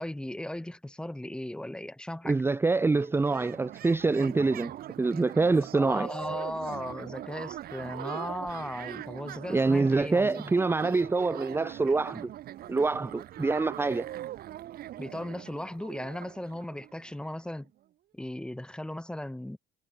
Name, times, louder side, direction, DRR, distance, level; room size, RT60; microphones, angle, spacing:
voice 1, 0.0-2.4 5.7-10.5 15.0-17.7 18.1-19.6, left 1 dB, 5° left, 1.0 m, -37 dB
voice 2, 2.2-4.7 5.0-6.1 9.5-12.3 12.7-14.1, right 3 dB, 15° right, 0.6 m, -25 dB
sound 1, 2.7-17.3, right 13 dB, 65° right, 1.5 m, -42 dB
cardioid pair, 110°, 17 cm